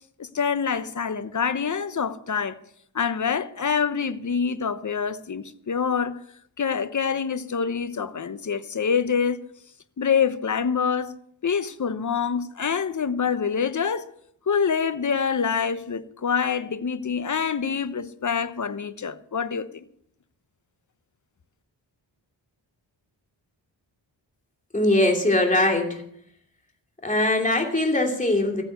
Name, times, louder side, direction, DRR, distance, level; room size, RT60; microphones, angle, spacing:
voice 1, 0.2-2.6 2.9-6.2 6.6-9.4 10.0-11.1 11.4-14.1 14.5-19.9, left 6 dB, 40° left, 0.9 m, -26 dB
voice 2, 24.7-26.0 27.0-28.6, left 1 dB, 15° left, 2.8 m, -21 dB
15.0 x 9.3 x 6.6 m
cardioid pair, 75°, 47 cm